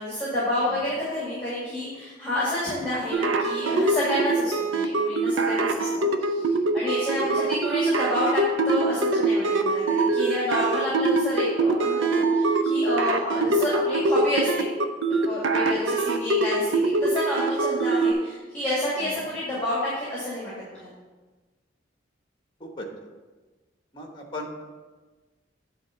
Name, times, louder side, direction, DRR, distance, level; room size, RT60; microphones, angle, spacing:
voice 1, 0.0-6.5 6.7-14.7 15.2-20.9, left 1 dB, 10° left, -8 dB, 2.1 m, -29 dB
sound 1, 3.1-18.1, right 2 dB, 90° right, 0.7 m, -23 dB
voice 2, 23.9-24.6, left 1 dB, 25° left, 2 dB, 1.0 m, -38 dB
8.9 x 3.6 x 6.9 m, 1.3 s
head